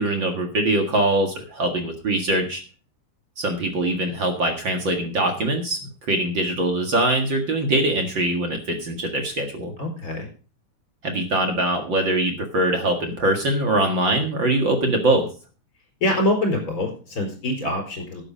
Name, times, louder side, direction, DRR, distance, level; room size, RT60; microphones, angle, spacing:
voice 1, 0.0-2.6 3.4-5.8 6.1-9.7 11.0-15.3, right 1 dB, 45° right, 4 dB, 1.6 m, -22 dB
voice 2, 9.8-10.3 16.0-18.2, left 1 dB, 20° left, 2 dB, 4.6 m, -24 dB
12.0 x 9.1 x 5.0 m, 0.37 s
omnidirectional pair, 4.5 m